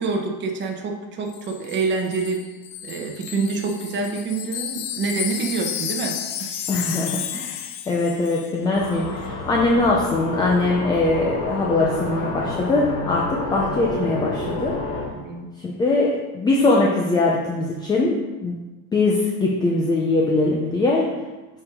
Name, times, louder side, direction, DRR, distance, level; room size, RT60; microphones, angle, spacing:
voice 1, 0.0-2.4 2.8-6.5 15.1-15.5, right 4 dB, 25° right, 1 dB, 1.0 m, -27 dB
Wind chime, 1.3-8.6 8.8-9.0, left 10 dB, 60° left, 0.8 m, -32 dB
voice 2, 6.7-14.8 15.6-18.6 18.9-21.1, left 2 dB, 10° left, -2 dB, 0.3 m, -21 dB
sound 1, 8.7-15.0, left 2 dB, 30° left, 1.5 m, -29 dB
7.3 x 4.8 x 4.8 m, 1.2 s
cardioid pair, 160°, 44 cm